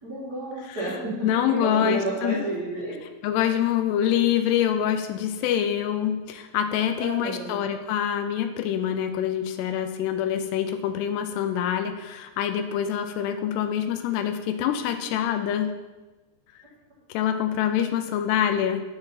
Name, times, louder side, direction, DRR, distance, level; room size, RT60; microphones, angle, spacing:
voice 1, 0.0-2.9 7.0-7.5, right 1 dB, 40° right, -10 dB, 1.4 m, -30 dB
voice 2, 1.2-2.4 3.2-15.7 17.1-18.8, left 9 dB, 85° left, 7 dB, 2.6 m, -25 dB
7.6 x 4.7 x 5.6 m, 1.2 s
omnidirectional pair, 4.8 m